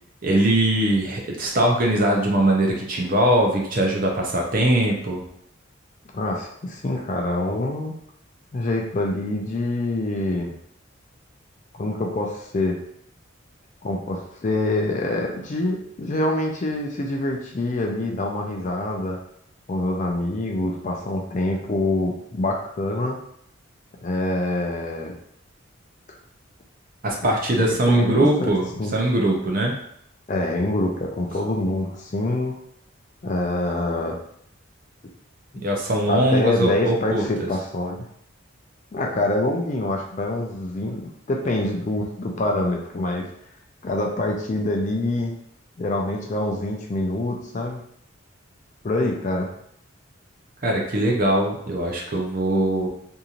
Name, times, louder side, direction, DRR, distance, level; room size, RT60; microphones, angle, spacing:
voice 1, 0.2-5.2 27.0-28.7 28.9-29.8 35.6-37.5 50.6-52.9, right 1 dB, 40° right, 0 dB, 0.5 m, -21 dB
voice 2, 6.1-7.9 8.5-10.5 11.8-12.8 13.8-19.2 19.7-23.2 24.0-25.1 27.2-27.3 27.6-28.5 28.8-29.0 30.3-32.6 33.2-34.2 35.5-35.6 36.1-38.0 38.9-43.3 43.8-45.4 45.8-47.8 48.8-49.5, left 2 dB, 35° left, 1 dB, 0.4 m, -25 dB
3.0 x 2.7 x 2.4 m, 0.70 s
head